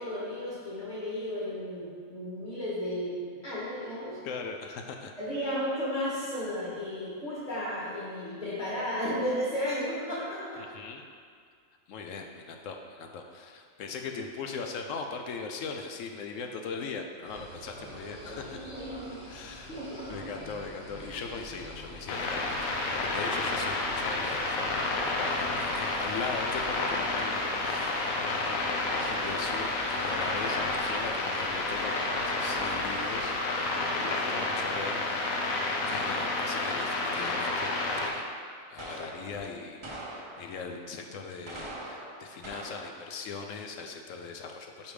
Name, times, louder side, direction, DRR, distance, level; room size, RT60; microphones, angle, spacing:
voice 1, 0.0-4.2 5.2-10.6 18.2-19.2 19.7-20.1 33.8-34.5 35.8-36.1 38.9-39.1, equal, 30° left, -9 dB, 1.8 m, -34 dB
voice 2, 4.2-5.1 10.6-11.0 11.9-18.7 19.2-19.8 20.1-22.7 23.0-24.7 25.1-28.0 28.5-35.5 35.9-38.3 38.7-44.9, left 5 dB, 75° left, 3 dB, 0.9 m, -40 dB
sound 1, 17.2-33.4, equal, 45° left, 2.1 m, -47 dB
sound 2, 22.1-38.1, left 2 dB, 90° left, 1.2 m, -30 dB
sound 3, 38.8-39.4 39.8-40.7 41.3-43.1, right 1 dB, 35° right, 0.5 m, -43 dB
5.4 x 5.1 x 4.8 m, 2.1 s
omnidirectional pair, 1.4 m